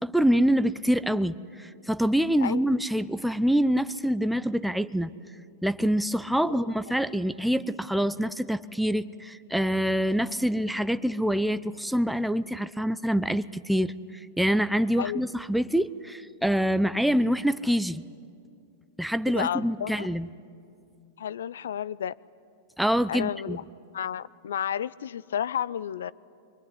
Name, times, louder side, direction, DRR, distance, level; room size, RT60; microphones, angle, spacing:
voice 1, 0.0-5.1 5.6-18.0 19.0-20.3 22.8-23.6, equal, ahead, 12 dB, 0.7 m, -26 dB
voice 2, 19.3-20.1 21.2-22.1 23.1-23.6 23.9-26.1, left 9 dB, 75° left, 20 dB, 0.6 m, -32 dB
24.0 x 23.0 x 9.9 m, 2.5 s
hypercardioid pair, 100°, 0 cm